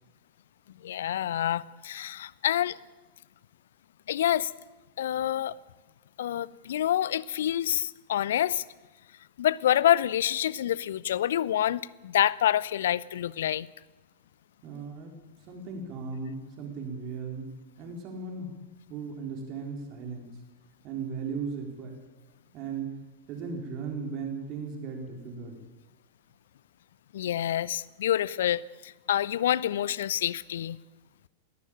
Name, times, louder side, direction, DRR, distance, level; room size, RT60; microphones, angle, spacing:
voice 1, 0.8-2.8 4.1-4.5 5.0-5.5 6.2-8.6 9.4-13.7 27.1-30.8, left 11 dB, 60° left, 0.6 m, -27 dB
voice 2, 14.6-15.2 15.5-18.6 18.9-20.4 20.8-22.0 22.5-23.0 23.3-25.6, right 5 dB, 40° right, 4.2 m, -37 dB
21.0 x 18.5 x 8.8 m
figure-of-eight pair, 90°, 0 cm